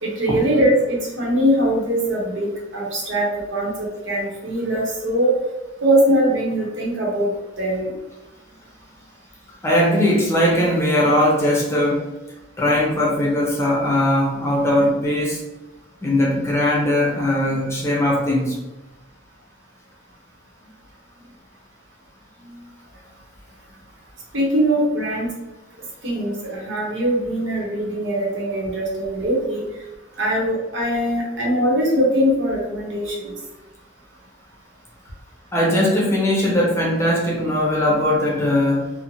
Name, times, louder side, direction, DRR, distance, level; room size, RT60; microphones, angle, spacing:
voice 1, 0.0-5.3 5.8-7.3 7.6-7.9 24.3-25.3 26.0-29.6 30.2-33.3, right 1 dB, 80° right, -4 dB, 0.9 m, -21 dB
voice 2, 9.6-12.1 12.6-15.4 16.0-18.6 22.4-22.6 35.5-38.9, left 1 dB, 15° left, -4 dB, 0.7 m, -19 dB
2.5 x 2.1 x 3.0 m, 1.0 s
head